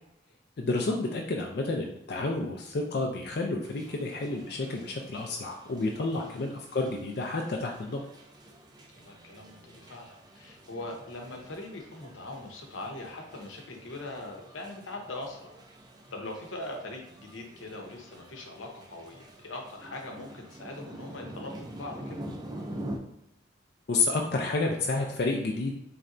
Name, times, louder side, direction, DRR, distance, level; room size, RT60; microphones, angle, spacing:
voice 1, 0.6-8.0 23.9-25.7, left 3 dB, 55° left, 1 dB, 0.4 m, -30 dB
sound 1, 3.6-23.0, right 1 dB, 20° right, 0.4 m, -46 dB
voice 2, 9.0-15.6 16.1-22.2, left 2 dB, 90° left, 1 dB, 0.8 m, -41 dB
4.1 x 3.2 x 2.5 m, 0.83 s
head